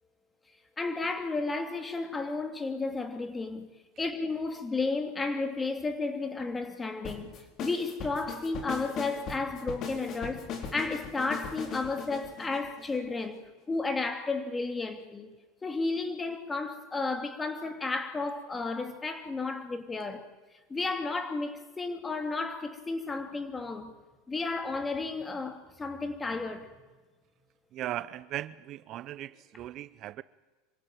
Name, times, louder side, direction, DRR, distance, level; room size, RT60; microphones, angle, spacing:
voice 1, 0.8-13.4 13.7-15.3 15.6-20.3 20.7-23.9 24.3-26.7, left 3 dB, 20° left, 2.9 m, -33 dB
sound 1, 7.0-13.3, left 5 dB, 45° left, 4.4 m, -39 dB
voice 2, 27.7-30.2, right 13 dB, 50° right, 0.7 m, -38 dB
25.5 x 16.5 x 9.0 m
hypercardioid pair, 95°, 0 cm